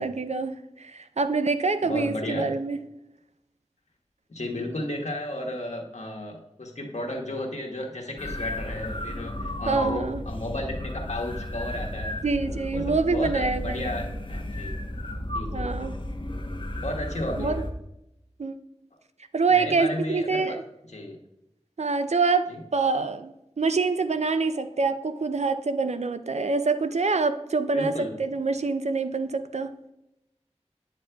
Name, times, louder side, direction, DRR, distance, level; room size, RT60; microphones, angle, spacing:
voice 1, 0.0-2.8 9.7-10.2 12.2-14.0 15.5-15.9 17.4-17.6 18.4-18.6 19.3-20.6 21.8-29.7, right 4 dB, 70° right, 10 dB, 0.5 m, -26 dB
voice 2, 1.8-2.5 4.3-14.8 15.3-15.7 16.8-17.7 19.5-20.6 20.9-21.2 22.5-22.6 27.7-28.1, left 1 dB, 80° left, 1 dB, 1.2 m, -33 dB
sound 1, 8.2-17.7, left 1 dB, 45° left, 0.9 m, -33 dB
8.4 x 7.3 x 2.3 m, 0.86 s
wide cardioid pair, 40°, 12 cm